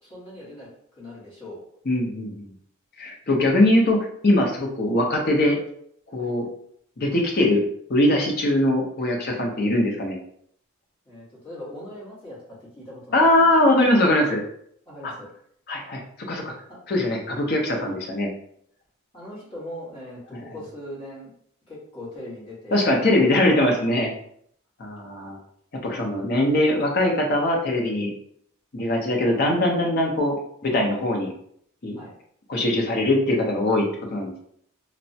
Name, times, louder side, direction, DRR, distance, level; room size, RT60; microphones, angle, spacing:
voice 1, 0.0-1.6 6.2-6.3 9.5-9.6 11.0-13.3 14.9-15.3 16.7-16.8 19.1-21.3 21.7-22.8 23.1-23.3 31.9-32.1, left 1 dB, 25° left, -9 dB, 1.2 m, -40 dB
voice 2, 1.9-2.5 3.0-5.6 6.1-6.5 7.0-7.6 7.9-10.2 13.1-14.4 15.0-15.1 15.7-16.0 16.3-16.4 16.9-18.3 20.3-20.4 22.7-24.1 24.8-25.4 25.8-28.1 28.7-30.4 30.6-31.3 31.8-32.0 32.5-33.8 34.1-34.4, left 1 dB, 45° left, 1 dB, 0.6 m, -21 dB
3.2 x 2.0 x 2.7 m, 0.66 s
head